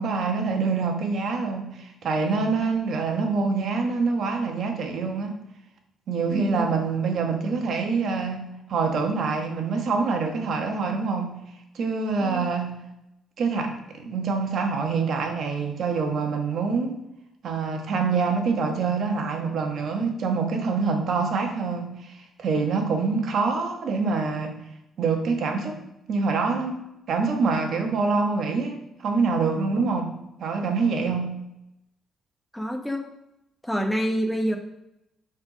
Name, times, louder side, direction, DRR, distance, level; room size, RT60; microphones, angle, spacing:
voice 1, 0.0-5.4 6.1-11.3 11.7-12.8 13.4-17.0 17.4-24.6 25.0-25.8 26.1-28.8 29.0-30.1 30.4-31.4, right 4 dB, 65° right, 4 dB, 1.2 m, -25 dB
voice 2, 6.3-6.7 12.2-12.4 32.5-33.0 33.6-34.6, equal, 5° left, 3 dB, 1.1 m, -27 dB
5.9 x 4.4 x 5.1 m, 0.86 s
cardioid pair, 90°, 0 cm